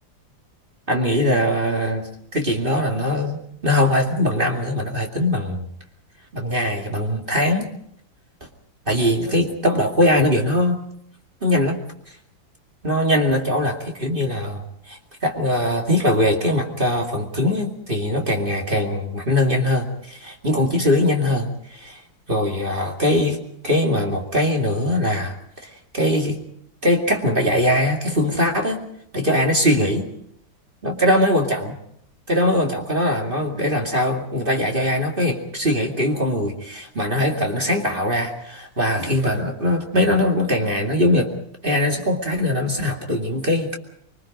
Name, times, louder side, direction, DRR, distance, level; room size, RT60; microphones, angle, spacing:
voice 1, 0.9-3.4 3.6-5.7 6.3-7.7 8.9-10.8 11.4-11.8 12.8-22.0 22.3-26.4 26.8-28.8 29.1-30.1 30.8-31.8 32.3-41.3 41.6-43.8, left 1 dB, 25° right, 1 dB, 2.5 m, -21 dB
25.0 x 23.5 x 5.2 m, 0.67 s
omnidirectional pair, 2.1 m